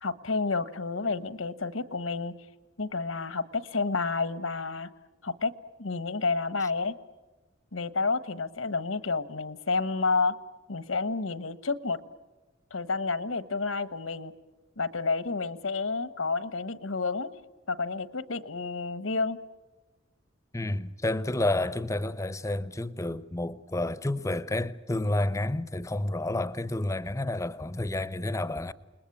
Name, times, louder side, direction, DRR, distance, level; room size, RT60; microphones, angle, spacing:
voice 1, 0.0-2.3 2.8-4.9 5.2-5.5 5.8-6.9 7.7-10.3 10.7-12.0 12.7-14.3 14.8-17.3 17.7-19.4, left 4 dB, 80° left, 1.3 m, -30 dB
voice 2, 20.5-28.7, left 1 dB, 15° left, 0.7 m, -30 dB
29.0 x 20.5 x 8.6 m
head